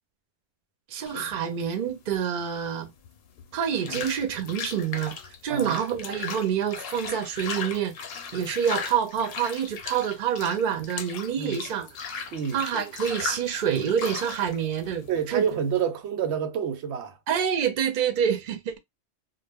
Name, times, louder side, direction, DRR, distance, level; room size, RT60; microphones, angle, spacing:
voice 1, 0.9-2.9 3.5-5.2 5.4-7.9 8.3-11.9 12.5-15.5 17.3-18.8, right 8 dB, 55° right, 0.6 m, -27 dB
sound 1, 1.1-15.8, left 6 dB, 70° left, 0.7 m, -38 dB
voice 2, 5.5-5.8 11.4-11.6 12.3-12.6 15.1-17.2, right 8 dB, 85° right, 0.9 m, -28 dB
2.0 x 2.0 x 3.4 m
omnidirectional pair, 1.1 m